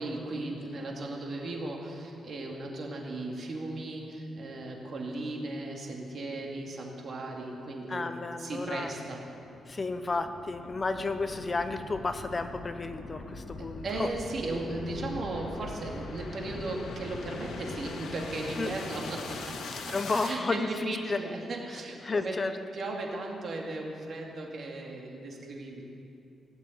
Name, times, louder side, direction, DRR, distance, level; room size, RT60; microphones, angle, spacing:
voice 1, 0.0-9.3 13.6-22.4 22.7-25.8, right 2 dB, 50° right, 0 dB, 2.5 m, -36 dB
voice 2, 7.9-8.9 9.7-14.1 18.6-18.7 19.7-21.2 22.0-22.5, left 3 dB, 25° left, 9 dB, 0.6 m, -32 dB
sound 1, 8.9-20.4, left 3 dB, 75° left, 1.8 m, -42 dB
18.0 x 7.3 x 9.3 m, 2.7 s
cardioid pair, 130°, 0 cm